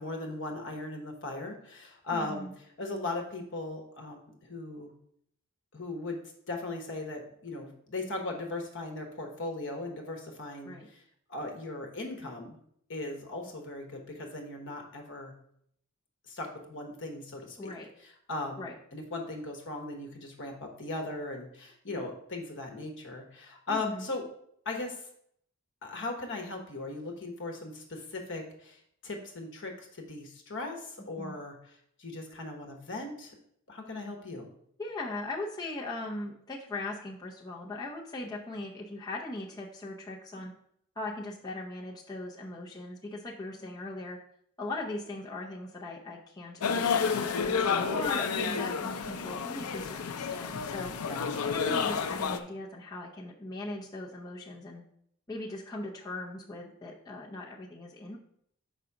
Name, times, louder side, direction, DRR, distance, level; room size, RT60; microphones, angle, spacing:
voice 1, 0.0-2.5 2.8-4.9 5.7-6.2 6.5-10.7 11.3-12.6 12.9-15.3 16.3-17.7 18.3-18.7 18.9-24.2 24.6-25.0 25.8-28.8 29.0-31.5 32.0-33.3 33.7-34.5 51.1-51.4, left 2 dB, 55° left, 3 dB, 1.2 m, -38 dB
voice 2, 2.1-2.5 10.6-10.9 17.6-17.9 18.6-18.7 23.7-24.1 31.2-31.4 34.8-40.5 41.0-44.2 44.6-47.1 47.4-50.9 51.4-54.8 55.3-58.2, left 2 dB, 15° left, -4 dB, 0.7 m, -39 dB
sound 1, 46.6-52.4, left 6 dB, 80° left, 0.5 m, -30 dB
5.1 x 4.0 x 5.9 m, 0.68 s
head